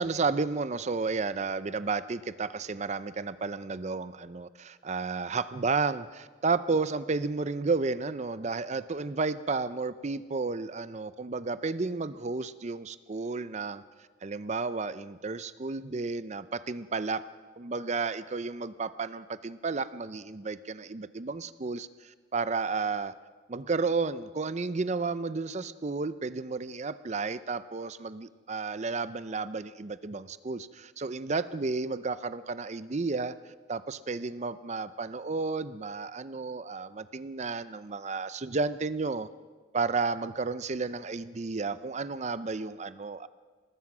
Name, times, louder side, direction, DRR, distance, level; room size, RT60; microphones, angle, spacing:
voice 1, 0.0-13.8 14.2-17.3 17.6-23.1 23.5-33.3 33.7-39.3 39.7-43.3, right 4 dB, 35° right, 14 dB, 0.5 m, -32 dB
26.0 x 19.0 x 6.1 m, 1.5 s
head